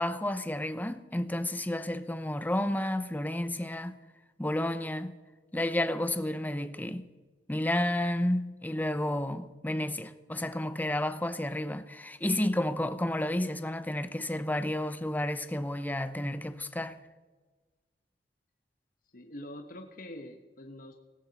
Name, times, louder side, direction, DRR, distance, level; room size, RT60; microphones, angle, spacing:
voice 1, 0.0-4.0 4.4-5.2 5.5-7.1 7.5-17.0, left 1 dB, 10° left, 0.7 m, -31 dB
voice 2, 19.1-20.9, left 1 dB, 55° left, 1.1 m, -44 dB
18.0 x 17.5 x 4.1 m
head